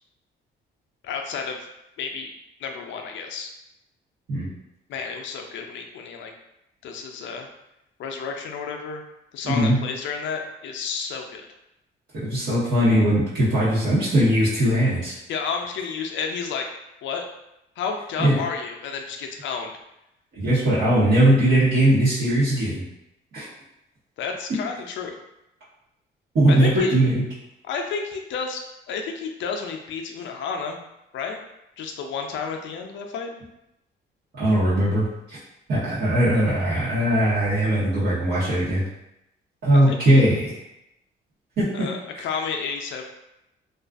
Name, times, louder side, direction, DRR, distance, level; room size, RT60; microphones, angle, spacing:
voice 1, 1.0-1.7 2.0-2.3 2.6-3.5 4.9-6.3 6.8-7.5 8.0-9.0 9.3-11.5 15.0-16.7 17.0-17.3 17.8-19.7 24.2-25.1 26.5-27.0 27.6-28.6 28.9-30.8 31.1-31.4 31.8-33.3 39.7-40.2 41.7-43.1, left 5 dB, 70° left, 3 dB, 0.4 m, -31 dB
voice 2, 9.4-9.8 12.1-15.1 18.2-18.4 20.3-22.8 23.3-23.4 26.3-27.2 34.4-35.4 35.7-38.8 39.6-40.5 41.6-41.9, right 1 dB, 60° right, -12 dB, 1.1 m, -20 dB
2.4 x 2.3 x 2.4 m, 0.85 s
cardioid pair, 90°, 20 cm